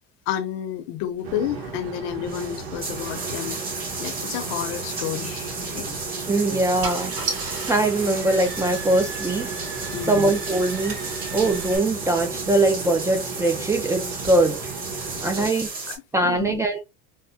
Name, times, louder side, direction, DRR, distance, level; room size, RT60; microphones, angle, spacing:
voice 1, 0.3-3.6 4.0-6.0 9.9-10.3 15.4-15.5 15.9-16.0 16.2-16.6, left 10 dB, 75° left, 0.8 m, -30 dB
front ST int idling plane amb english voice, 1.2-15.5, right 4 dB, 85° right, 1.0 m, -36 dB
sound 1, 1.6-1.7 2.1-16.0, right 3 dB, 30° right, 1.4 m, -34 dB
Car / Engine starting, 5.7-5.9 6.5-6.6 6.8-11.8, right 3 dB, 60° right, 2.0 m, -35 dB
voice 2, 6.3-9.5 10.1-11.0 11.3-14.7 15.2-15.7 16.1-16.8, right 2 dB, 10° right, 0.3 m, -22 dB
3.5 x 2.1 x 2.7 m
cardioid pair, 145°, 29 cm